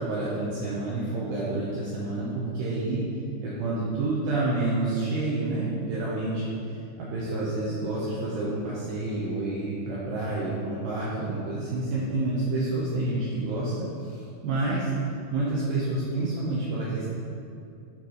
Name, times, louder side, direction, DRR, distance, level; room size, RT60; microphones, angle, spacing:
voice 1, 0.0-3.0 3.4-6.5 7.0-13.7 14.0-14.9 15.3-17.1, right 2 dB, 75° right, -7 dB, 2.3 m, -29 dB
9.0 x 3.3 x 3.9 m, 2.6 s
omnidirectional pair, 4.9 m